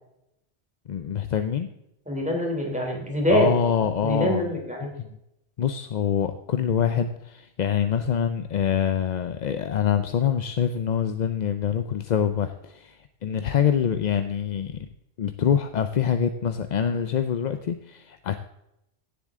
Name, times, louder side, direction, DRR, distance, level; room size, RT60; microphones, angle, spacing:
voice 1, 0.9-1.7 3.3-4.6 5.0-5.1 5.6-14.8 15.2-18.3, left 8 dB, 50° left, 9 dB, 0.6 m, -25 dB
voice 2, 2.1-3.5 4.0-4.9, equal, 5° right, 0 dB, 3.0 m, -24 dB
16.5 x 7.4 x 3.7 m, 0.84 s
omnidirectional pair, 1.1 m